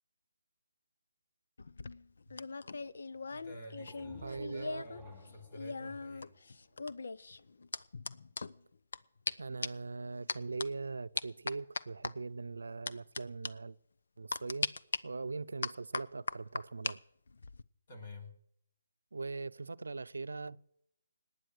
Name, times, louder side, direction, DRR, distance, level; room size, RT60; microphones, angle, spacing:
sound 1, 1.6-5.0 5.3-9.0 9.3-9.4 9.6-9.9 10.3-10.7 11.2-12.1 12.9-13.2 13.4-13.5 14.3-15.0 15.6-16.9 17.3-17.6, left 4 dB, 70° left, 0.7 m, -39 dB
voice 1, 3.3-6.3 17.9-18.4, left 1 dB, 45° left, 3.3 m, -50 dB
sound 2, 3.7-7.3, right 1 dB, 10° left, 3.5 m, -57 dB
voice 2, 4.2-4.9 9.4-13.8 14.2-14.7 15.0-17.0 19.1-20.7, right 3 dB, 90° right, 0.6 m, -41 dB
19.0 x 9.2 x 6.3 m
hypercardioid pair, 160°, 0 cm